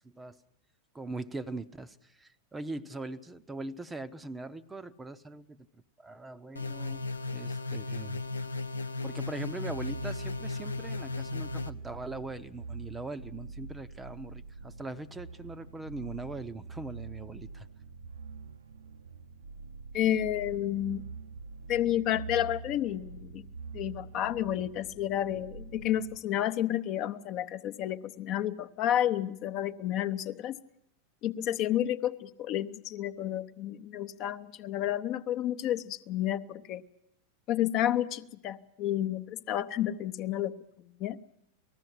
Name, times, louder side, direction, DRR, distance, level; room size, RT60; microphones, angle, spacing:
voice 1, 0.9-7.1 7.3-8.2 9.0-17.7, right 2 dB, 10° right, 13 dB, 0.7 m, -41 dB
sound 1, 6.6-11.7, left 3 dB, 80° left, 0.8 m, -35 dB
sound 2, 9.7-26.2, right 4 dB, 70° right, 0.7 m, -45 dB
voice 2, 19.9-21.0 21.7-23.5 23.7-30.6 31.2-36.8 37.5-40.5 41.0-41.2, left 12 dB, 35° left, 11 dB, 0.8 m, -31 dB
19.5 x 14.5 x 9.7 m, 0.78 s
figure-of-eight pair, 90°, 0 cm